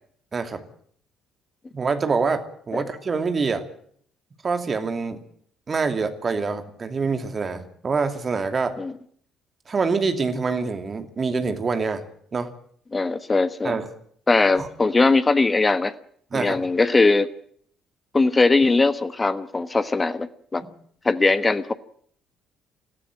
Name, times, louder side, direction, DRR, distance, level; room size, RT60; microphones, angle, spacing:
voice 1, 1.7-3.6 4.4-5.2 5.7-8.8 9.7-12.0 12.3-12.5 13.6-13.9 14.6-14.7 16.3-16.6 20.6-20.7, right 4 dB, 35° right, 8 dB, 2.7 m, -25 dB
voice 2, 12.9-13.8 14.3-15.9 16.3-17.3 18.1-20.6 21.0-21.7, left 3 dB, 25° left, 13 dB, 1.2 m, -20 dB
22.0 x 15.5 x 9.1 m, 0.63 s
figure-of-eight pair, 50°, 0 cm